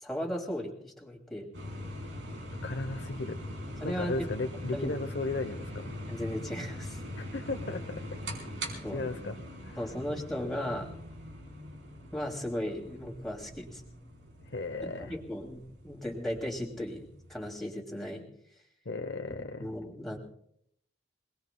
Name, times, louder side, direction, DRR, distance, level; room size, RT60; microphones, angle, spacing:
voice 1, 0.0-1.5 3.8-4.9 6.1-7.0 8.8-9.1 9.8-10.9 12.1-13.8 14.8-18.2 19.6-20.2, equal, ahead, -1 dB, 2.8 m, -36 dB
sound 1, 1.5-17.5, equal, 85° right, 4.3 m, -42 dB
voice 2, 2.6-3.4 3.8-5.9 7.2-8.0 8.9-9.4 9.7-9.8 14.5-15.1 18.8-19.7, left 3 dB, 75° left, 7 dB, 0.9 m, -35 dB
27.0 x 19.5 x 2.3 m, 0.70 s
head